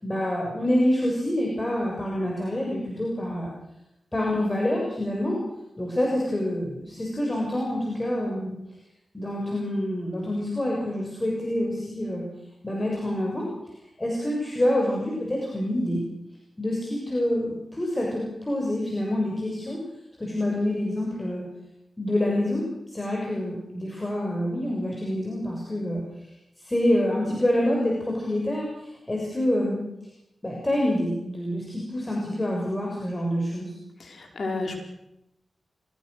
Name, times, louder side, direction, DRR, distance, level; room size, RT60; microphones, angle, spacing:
voice 1, 0.0-3.5 4.1-5.4 5.8-8.6 9.1-12.3 12.6-13.5 14.0-16.0 16.6-19.8 20.2-21.4 22.0-26.0 26.6-29.8 30.4-33.7, left 1 dB, 25° left, -2 dB, 7.0 m, -27 dB
voice 2, 34.0-34.8, left 3 dB, 65° left, 3 dB, 5.1 m, -31 dB
23.5 x 21.0 x 6.7 m, 0.86 s
cardioid pair, 45°, 0 cm